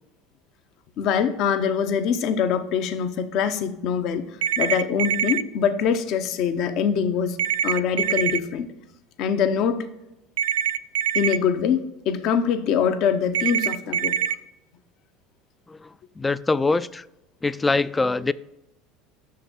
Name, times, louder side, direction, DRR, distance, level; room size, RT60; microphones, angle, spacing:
voice 1, 1.0-4.3 4.6-7.4 7.6-8.7 9.2-9.9 11.1-14.2, left 7 dB, 60° left, 0.8 m, -23 dB
sound 1, 4.4-5.4 7.4-8.4 10.4-11.4 13.3-14.4, right 9 dB, 85° right, 0.3 m, -24 dB
voice 2, 16.2-17.0 17.4-18.3, left 3 dB, 15° left, 0.3 m, -23 dB
6.4 x 5.7 x 6.1 m
supercardioid pair, 95°, 0 cm